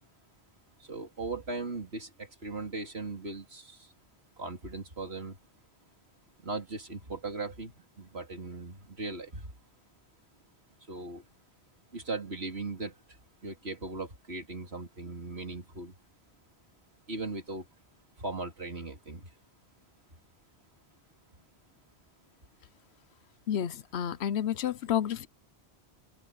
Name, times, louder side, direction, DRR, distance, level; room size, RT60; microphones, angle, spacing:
voice 1, 0.8-3.9 4.4-5.4 6.4-9.5 10.9-11.3 11.9-13.0 13.4-15.9 17.1-17.7 18.2-19.3, right 3 dB, 75° right, 3.7 m, -38 dB
voice 2, 23.5-25.3, left 9 dB, 85° left, 1.0 m, -30 dB
open air
omnidirectional pair, 1.1 m